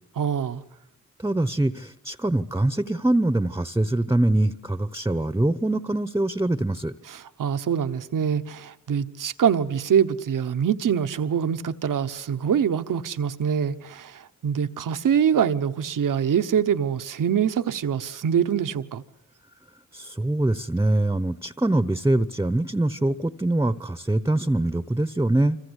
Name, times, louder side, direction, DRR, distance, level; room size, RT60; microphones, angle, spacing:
voice 1, 0.2-0.6 7.0-19.0, right 8 dB, 80° right, 1.2 m, -24 dB
voice 2, 1.2-6.9 19.9-25.6, right 1 dB, 10° right, 1.0 m, -23 dB
27.5 x 25.5 x 8.2 m
cardioid pair, 55°, 32 cm